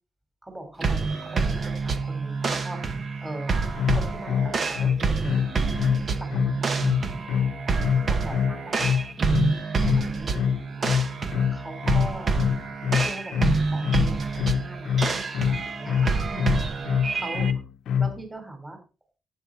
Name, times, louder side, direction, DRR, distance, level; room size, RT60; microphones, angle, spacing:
voice 1, 0.4-5.5 6.2-7.2 7.8-8.9 9.4-9.6 9.8-10.3 11.5-12.3 13.0-16.0 16.3-17.5 18.0-18.8, right 1 dB, 15° right, 5 dB, 4.8 m, -40 dB
sound 1, 0.8-17.5, right 4 dB, 45° right, 1.6 m, -27 dB
sound 2, 3.8-18.2, left 7 dB, 70° left, 0.9 m, -25 dB
11.5 x 9.4 x 4.5 m, 0.31 s
cardioid pair, 90°, 0 cm